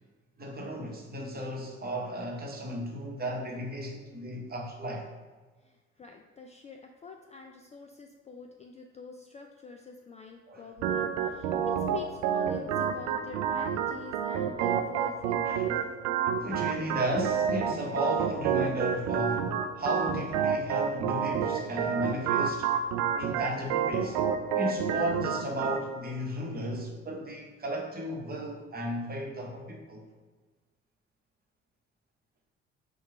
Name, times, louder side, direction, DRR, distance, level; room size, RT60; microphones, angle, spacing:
voice 1, 0.4-5.1 10.5-10.7 15.5-15.7 16.4-22.7 23.2-24.2 24.5-30.0, equal, 30° right, 1.0 m, -34 dB
voice 2, 5.6-15.6, left 5 dB, 20° left, 0.3 m, -45 dB
Organ, 10.8-25.8, right 7 dB, 60° right, 0.4 m, -29 dB
4.5 x 2.3 x 4.4 m
figure-of-eight pair, 45°, 32 cm